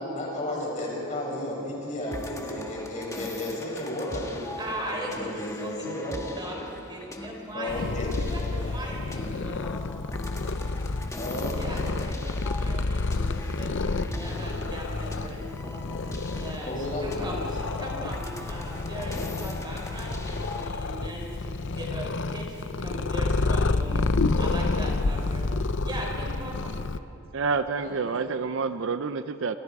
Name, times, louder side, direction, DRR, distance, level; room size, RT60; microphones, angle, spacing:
voice 1, 0.0-4.4 4.9-6.2 7.5-8.1 8.6-8.7 11.2-11.9 12.6-12.8 16.6-17.4 27.8-28.0, left 1 dB, 35° left, -3 dB, 6.9 m, -33 dB
sound 1, 2.0-20.7, left 1 dB, 15° left, 1.6 m, -41 dB
voice 2, 4.6-5.9 6.3-7.9 8.2-9.7 11.6-15.5 16.3-16.7 17.0-25.5 25.8-26.8, right 1 dB, 20° right, -1 dB, 4.6 m, -39 dB
Purr, 7.7-27.0, left 3 dB, 55° left, 0.7 m, -29 dB
voice 3, 27.3-29.6, right 4 dB, 60° right, 11 dB, 0.6 m, -28 dB
28.5 x 27.5 x 4.8 m, 2.9 s
head